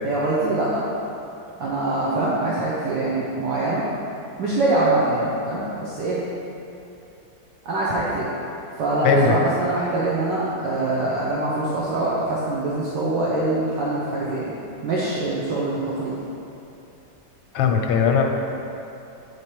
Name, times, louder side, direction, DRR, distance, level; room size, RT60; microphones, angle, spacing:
voice 1, 0.0-0.8 1.6-3.8 4.4-6.2 7.6-8.3 8.8-14.5 14.8-16.2, right 2 dB, 70° right, -7 dB, 1.4 m, -24 dB
voice 2, 9.0-9.4 17.5-18.2, left 5 dB, 90° left, 3 dB, 1.4 m, -18 dB
8.5 x 3.3 x 4.6 m, 2.8 s
omnidirectional pair, 2.1 m